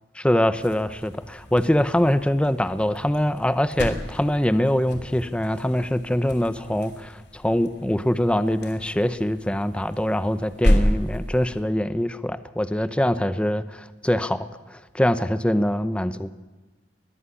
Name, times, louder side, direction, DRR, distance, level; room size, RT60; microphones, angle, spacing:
voice 1, 0.2-16.3, equal, 5° left, 12 dB, 0.7 m, -23 dB
sound 1, 0.5-11.7, equal, 85° left, 3.1 m, -30 dB
21.0 x 14.5 x 9.9 m, 1.2 s
head